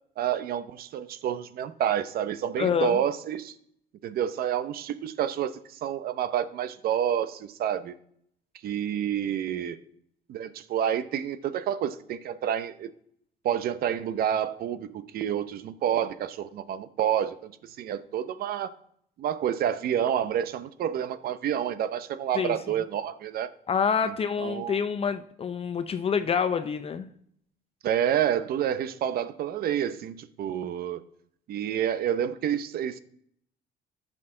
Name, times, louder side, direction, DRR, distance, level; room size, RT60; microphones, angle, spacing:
voice 1, 0.2-3.5 4.0-7.9 8.6-9.8 10.3-12.9 13.4-18.7 19.2-23.5 24.0-24.8 27.8-31.0 31.5-33.0, right 9 dB, 65° right, 14 dB, 0.7 m, -29 dB
voice 2, 2.6-3.0 22.4-22.6 23.7-27.1, left 6 dB, 35° left, 10 dB, 0.6 m, -27 dB
14.0 x 6.2 x 3.8 m, 0.68 s
cardioid pair, 110°, 17 cm